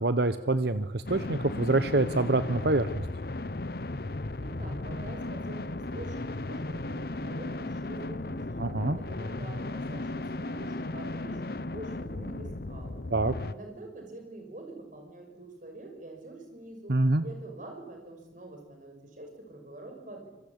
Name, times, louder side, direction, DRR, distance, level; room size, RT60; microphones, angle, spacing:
voice 1, 0.0-2.9 8.6-9.0 13.1-13.3 16.9-17.2, right 2 dB, 60° right, 12 dB, 1.0 m, -26 dB
sound 1, 1.1-13.5, left 2 dB, 55° left, 0.9 m, -35 dB
voice 2, 4.4-13.1 13.5-20.3, right 2 dB, 45° right, 4 dB, 6.1 m, -46 dB
27.0 x 21.0 x 8.9 m, 0.92 s
head